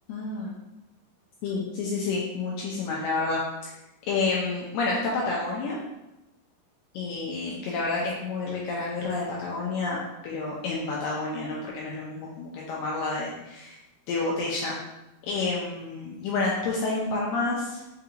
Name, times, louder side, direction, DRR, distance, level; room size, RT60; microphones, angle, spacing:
voice 1, 0.1-0.5 1.4-3.4 4.1-5.8 6.9-10.0 10.2-13.8 14.1-14.8 15.3-17.9, left 3 dB, 85° left, -3 dB, 2.0 m, -29 dB
5.7 x 2.8 x 2.5 m, 0.95 s
omnidirectional pair, 4.4 m